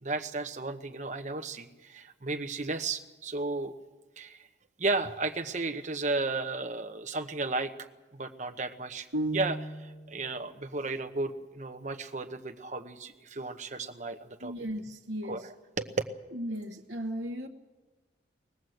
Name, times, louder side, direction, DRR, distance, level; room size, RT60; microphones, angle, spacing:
voice 1, 0.0-3.7 4.2-4.4 4.8-7.7 8.1-9.1 9.3-14.5 15.3-15.4 15.8-15.9, right 3 dB, 40° right, 7 dB, 0.9 m, -34 dB
sound 1, 9.1-10.2, right 1 dB, 90° right, 1.4 m, -33 dB
voice 2, 14.4-15.5 16.3-17.5, equal, 70° right, 0 dB, 1.1 m, -36 dB
20.0 x 19.0 x 7.8 m, 1.2 s
head